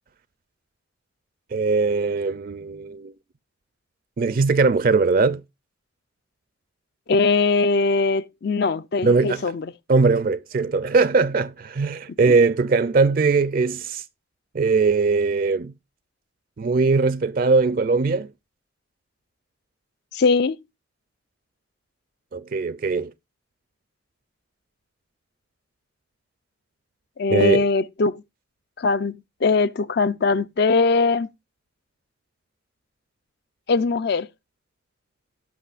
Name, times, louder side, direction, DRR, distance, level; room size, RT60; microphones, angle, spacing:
voice 1, 1.5-3.1 4.2-5.4 9.0-9.4 9.9-14.0 14.5-15.7 16.6-18.3 22.3-23.1 27.3-27.7, right 4 dB, 45° right, 0.4 m, -20 dB
voice 2, 7.1-9.7 20.1-20.6 27.2-28.2 28.8-31.3 33.7-34.3, left 4 dB, 55° left, 0.5 m, -21 dB
17.0 x 6.1 x 2.4 m
head